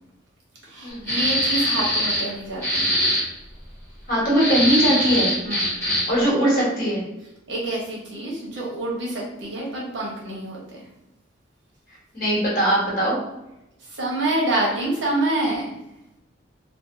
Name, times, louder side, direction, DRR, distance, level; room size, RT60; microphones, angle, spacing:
voice 1, 0.7-3.0 5.4-5.7 7.5-10.6 13.9-15.7, right 1 dB, 75° right, -4 dB, 0.9 m, -27 dB
sound 1, 1.1-2.3 2.6-3.2 4.3-6.2, equal, 10° left, 1.1 m, -22 dB
voice 2, 4.1-5.3 6.1-7.0 12.1-13.2, right 1 dB, 50° left, -6 dB, 1.2 m, -20 dB
2.6 x 2.3 x 2.5 m, 0.89 s
head